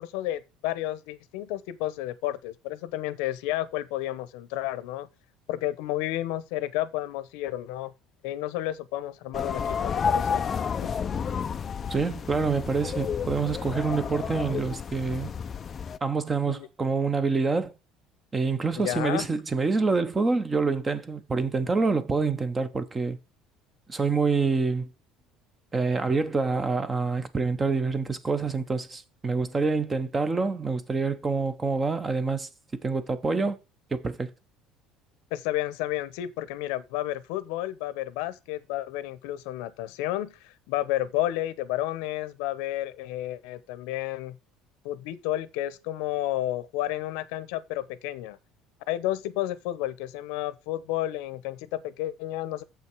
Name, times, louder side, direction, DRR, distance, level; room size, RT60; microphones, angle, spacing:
voice 1, 0.0-5.1 5.5-7.9 8.2-10.4 10.8-10.9 16.5-16.7 18.8-19.3 35.3-44.4 44.8-48.4 48.9-52.6, left 14 dB, 80° left, 0.8 m, -31 dB
sound 1, 9.3-16.0, left 6 dB, 25° left, 0.4 m, -30 dB
voice 2, 11.9-15.3 16.0-17.7 18.3-23.2 23.9-24.9 25.7-33.6 33.9-34.3, right 4 dB, 15° right, 0.6 m, -26 dB
7.5 x 5.8 x 6.1 m
cardioid pair, 175°, 0 cm